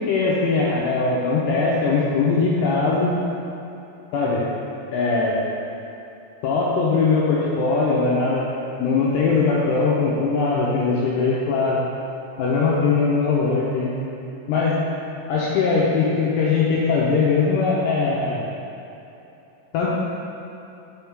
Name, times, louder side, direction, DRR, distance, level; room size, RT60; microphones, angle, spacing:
voice 1, 0.0-3.2 4.1-4.4 4.9-5.4 6.4-8.4 8.8-11.8 12.4-13.9 14.5-14.8 15.3-18.5 19.7-19.9, left 4 dB, 90° left, -6 dB, 2.4 m, -20 dB
6.2 x 5.7 x 3.5 m, 2.9 s
omnidirectional pair, 5.5 m